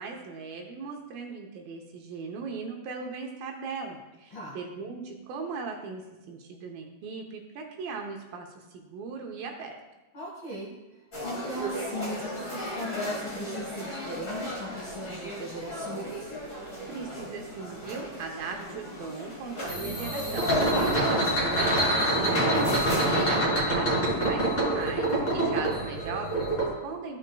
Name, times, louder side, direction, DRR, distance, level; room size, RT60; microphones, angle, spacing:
voice 1, 0.0-9.8 16.9-20.5 21.0-27.2, right 4 dB, 75° right, 2 dB, 2.4 m, -38 dB
voice 2, 10.1-10.7 11.2-16.3 20.7-20.9, equal, 65° left, -5 dB, 1.2 m, -37 dB
sound 1, 11.1-23.4, left 1 dB, 40° left, 1.1 m, -35 dB
sound 2, 19.7-26.7, right 1 dB, 15° left, 1.8 m, -26 dB
14.5 x 5.3 x 2.2 m, 1.0 s
omnidirectional pair, 4.4 m